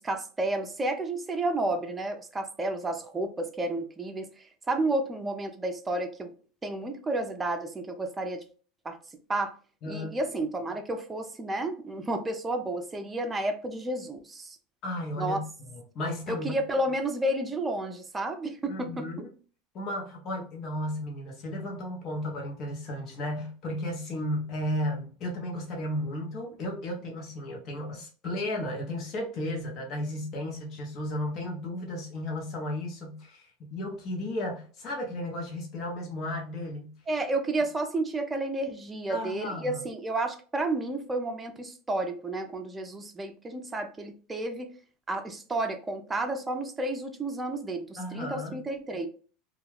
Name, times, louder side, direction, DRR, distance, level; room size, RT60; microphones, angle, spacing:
voice 1, 0.0-6.3 6.6-8.4 8.8-9.0 9.3-9.5 9.9-14.6 15.2-15.4 16.3-19.1 37.1-44.7 45.1-49.1, right 2 dB, 15° right, 5 dB, 0.6 m, -31 dB
voice 2, 9.8-10.2 14.8-15.4 15.7-16.5 18.7-19.3 19.7-36.9 39.1-39.8 48.0-48.6, left 1 dB, 50° left, 0 dB, 0.9 m, -34 dB
2.4 x 2.2 x 3.2 m, 0.39 s
hypercardioid pair, 100°, 0 cm